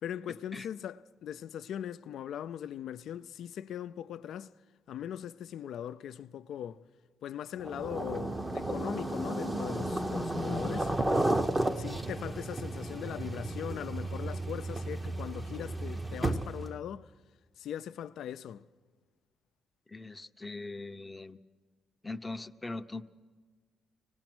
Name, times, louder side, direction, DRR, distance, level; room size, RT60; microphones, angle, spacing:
voice 1, 0.0-4.5 4.9-6.8 7.2-10.9 11.8-17.1 17.6-18.7, left 10 dB, 75° left, 0.5 m, -40 dB
sound 1, 7.6-16.7, right 1 dB, 15° right, 0.9 m, -33 dB
voice 2, 19.9-21.4 22.0-23.0, left 2 dB, 15° left, 0.7 m, -41 dB
24.5 x 19.0 x 6.1 m
cardioid pair, 90°, 0 cm